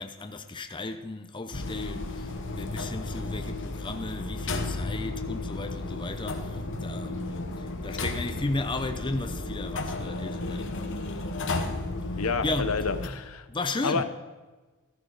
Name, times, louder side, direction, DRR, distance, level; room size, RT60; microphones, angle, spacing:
voice 1, 0.0-11.3 12.1-12.8 13.5-14.0, left 2 dB, 20° left, 0.7 m, -35 dB
sound 1, 1.5-13.1, left 2 dB, 60° left, 1.3 m, -33 dB
voice 2, 12.2-13.5 13.8-14.0, left 4 dB, 75° left, 0.9 m, -29 dB
14.0 x 13.5 x 4.1 m
head